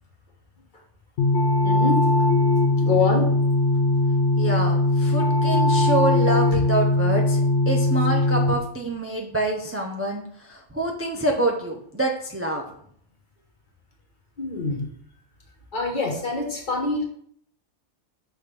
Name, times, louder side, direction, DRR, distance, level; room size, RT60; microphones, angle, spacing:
sound 1, 1.2-8.5, left 2 dB, 75° left, 1.0 m, -20 dB
voice 1, 1.6-2.1 2.8-3.3 14.4-14.9 15.7-17.0, left 4 dB, 45° left, 1 dB, 1.3 m, -25 dB
voice 2, 4.4-12.6, right 2 dB, 15° right, 1 dB, 0.5 m, -26 dB
6.0 x 3.5 x 5.1 m, 0.64 s
omnidirectional pair, 1.2 m